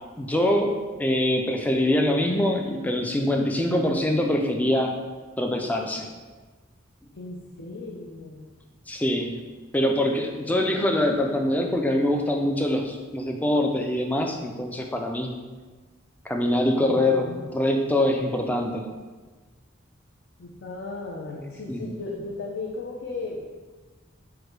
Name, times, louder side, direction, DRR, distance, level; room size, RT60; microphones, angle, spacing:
voice 1, 0.2-4.9 5.4-6.1 8.9-9.4 9.7-15.3 16.3-18.9 21.7-21.9, left 1 dB, 10° left, 2 dB, 0.3 m, -24 dB
voice 2, 7.2-8.5 16.8-17.5 20.4-23.4, left 3 dB, 60° left, -2 dB, 0.5 m, -36 dB
4.8 x 2.1 x 4.5 m, 1.3 s
head